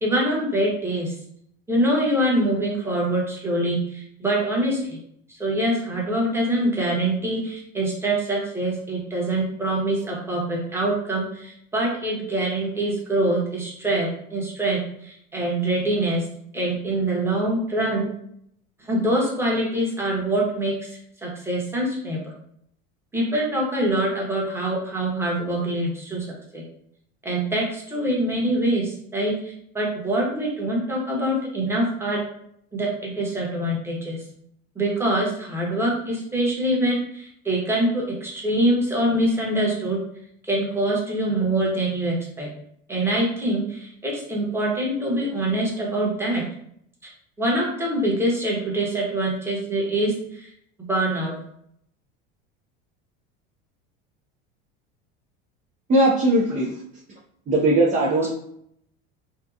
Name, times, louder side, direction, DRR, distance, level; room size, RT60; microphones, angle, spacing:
voice 1, 0.0-1.1 1.7-5.0 5.4-16.2 16.5-18.1 18.8-20.7 21.2-22.2 23.1-26.3 26.5-26.6 27.2-32.2 32.7-34.2 34.8-40.0 40.5-42.5 42.9-46.4 47.4-50.5 50.9-51.3, right 1 dB, 10° right, -3 dB, 0.9 m, -24 dB
voice 2, 55.9-56.7 57.5-58.3, right 1 dB, 25° right, -2 dB, 0.4 m, -19 dB
2.7 x 2.2 x 2.4 m, 0.70 s
supercardioid pair, 105°, 29 cm